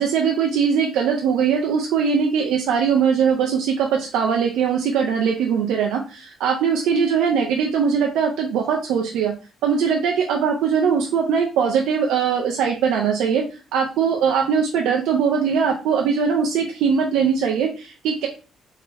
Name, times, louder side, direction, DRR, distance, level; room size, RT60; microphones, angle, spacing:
voice 1, 0.0-9.3 9.6-13.4 13.7-18.3, right 6 dB, 90° right, 1 dB, 0.5 m, -21 dB
3.7 x 2.8 x 2.6 m, 0.33 s
cardioid pair, 90°, 0 cm